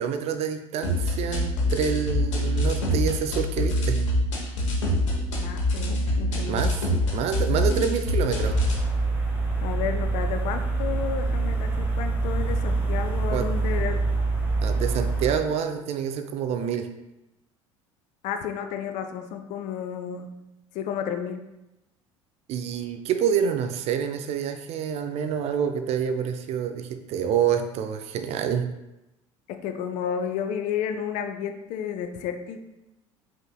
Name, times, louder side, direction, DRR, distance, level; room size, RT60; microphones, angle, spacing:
voice 1, 0.0-4.0 6.4-6.8 7.1-8.6 13.3-13.5 14.6-16.9 22.5-28.7, right 8 dB, 40° right, 8 dB, 0.4 m, -27 dB
sound 1, 0.8-8.8, left 1 dB, 70° left, 0.8 m, -25 dB
voice 2, 5.3-6.7 7.5-8.0 9.6-14.0 18.2-20.4 20.7-21.5 29.5-32.6, left 8 dB, 50° left, 7 dB, 0.4 m, -32 dB
sound 2, 8.3-15.3, right 3 dB, 10° right, 1.0 m, -26 dB
5.1 x 3.7 x 2.3 m, 0.94 s
figure-of-eight pair, 60°, 16 cm